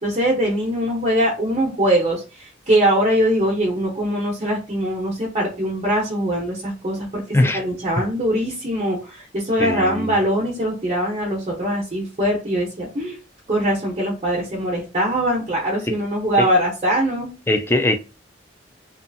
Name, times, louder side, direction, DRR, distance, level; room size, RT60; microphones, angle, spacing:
voice 1, 0.0-7.2 7.5-13.2 13.5-17.3, equal, 35° right, 0.7 m, -22 dB
voice 2, 9.6-10.1 16.4-16.5 17.5-18.0, left 1 dB, 15° left, 0.3 m, -20 dB
2.6 x 2.3 x 2.5 m
head